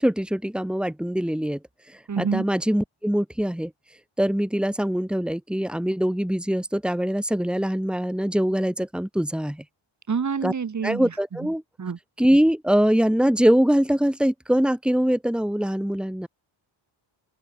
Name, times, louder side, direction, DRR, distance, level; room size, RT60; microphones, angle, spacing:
voice 1, 0.0-1.6 1.9-3.7 4.2-9.6 10.4-10.5 10.8-11.6 12.2-16.3, equal, ahead, 5.4 m, -23 dB
voice 2, 2.1-2.5 10.1-11.1 11.8-12.0, right 6 dB, 35° right, 7.0 m, -27 dB
open air
cardioid pair, 140°, 48 cm